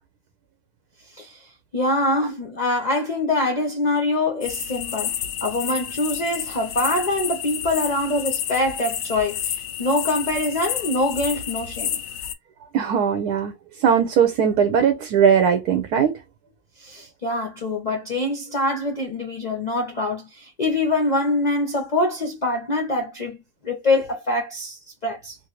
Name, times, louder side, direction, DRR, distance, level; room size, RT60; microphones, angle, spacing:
voice 1, 1.7-12.0 16.8-25.4, left 2 dB, 65° left, 0.4 m, -24 dB
sound 1, 4.4-12.3, left 10 dB, 85° left, 1.1 m, -30 dB
voice 2, 12.7-13.5 13.8-16.2, right 7 dB, 85° right, 1.2 m, -19 dB
3.0 x 2.6 x 2.9 m
omnidirectional pair, 1.6 m